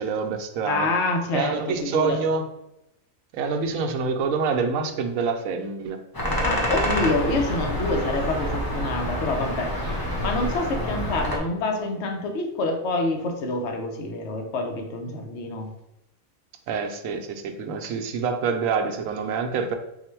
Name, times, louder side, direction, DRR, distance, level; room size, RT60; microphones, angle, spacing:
voice 1, 0.0-0.9 1.3-2.4 3.3-6.0 16.7-19.8, right 5 dB, 75° right, 5 dB, 1.0 m, -26 dB
voice 2, 0.6-2.2 6.4-9.8 10.2-15.7, left 2 dB, 60° left, 3 dB, 0.9 m, -27 dB
sound 1, 6.1-11.4, left 1 dB, 25° left, 0.5 m, -27 dB
4.6 x 2.1 x 4.4 m, 0.88 s
omnidirectional pair, 1.5 m